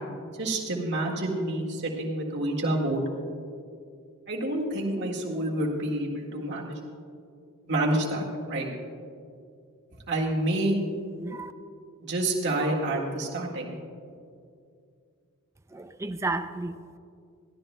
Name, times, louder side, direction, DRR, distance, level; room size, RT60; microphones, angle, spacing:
voice 1, 0.4-3.0 4.3-6.8 7.7-8.7 10.1-10.8 12.0-13.8, right 1 dB, 55° right, 1.8 m, -28 dB
voice 2, 11.2-11.5 15.7-17.0, right 2 dB, 15° right, 0.4 m, -33 dB
22.0 x 15.0 x 2.2 m
head